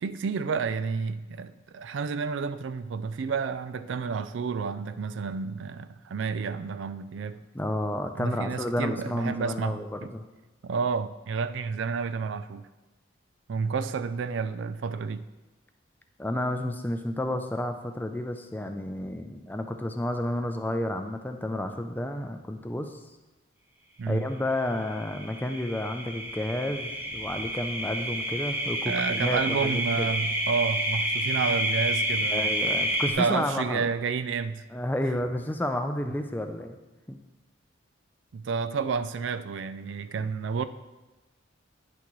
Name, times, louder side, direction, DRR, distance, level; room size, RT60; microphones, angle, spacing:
voice 1, 0.0-7.4 8.2-10.1 10.6-12.7 13.5-15.2 24.0-24.3 28.9-32.5 33.1-34.6 38.3-40.6, right 5 dB, 70° right, 0.4 m, -30 dB
voice 2, 7.5-10.3 16.2-23.0 24.1-30.1 32.3-33.8 34.7-36.8 37.1-37.2 40.2-40.3, left 1 dB, 10° left, 0.4 m, -31 dB
sound 1, 24.7-33.1, right 1 dB, 10° right, 0.8 m, -29 dB
9.9 x 6.0 x 3.1 m
head